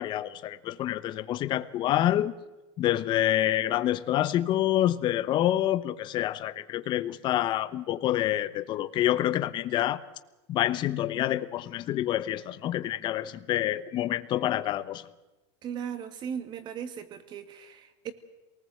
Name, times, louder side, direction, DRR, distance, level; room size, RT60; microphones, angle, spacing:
voice 1, 0.0-2.3 2.8-10.0 10.5-15.0, left 13 dB, 30° left, 1.1 m, -27 dB
voice 2, 15.6-18.1, right 8 dB, 30° right, 2.2 m, -37 dB
27.0 x 19.5 x 7.9 m
supercardioid pair, 155°, 15 cm